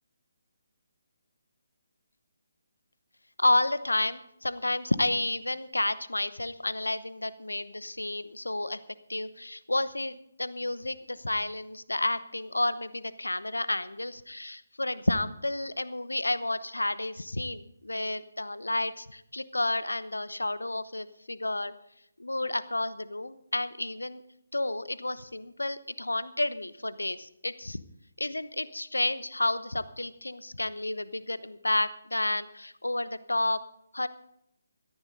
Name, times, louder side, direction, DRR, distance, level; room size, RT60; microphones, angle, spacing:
voice 1, 3.4-8.8 9.1-21.7 22.2-24.2 24.5-27.8 28.2-33.6 33.9-34.1, left 2 dB, 75° left, 15 dB, 0.9 m, -31 dB
17.5 x 13.0 x 3.9 m, 0.76 s
figure-of-eight pair, 145°, 0 cm